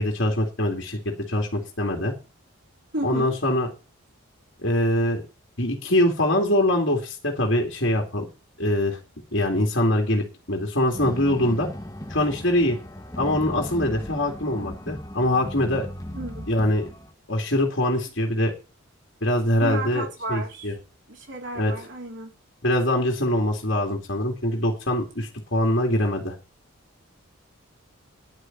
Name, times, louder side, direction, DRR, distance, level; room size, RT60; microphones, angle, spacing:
voice 1, 0.0-2.1 3.0-3.7 4.6-5.2 5.6-8.3 8.6-9.0 9.3-10.2 10.5-11.7 12.1-12.8 13.2-15.9 16.5-16.9 17.3-18.5 19.2-20.7 21.6-21.7 22.6-26.3, left 1 dB, 55° left, 1 dB, 2.6 m, -23 dB
voice 2, 2.9-3.3 16.1-16.5 19.6-20.7 21.1-22.3, right 2 dB, 55° right, 1 dB, 3.6 m, -33 dB
sound 1, 10.9-17.1, equal, 15° left, 1.1 m, -37 dB
10.5 x 6.6 x 9.1 m, 0.32 s
head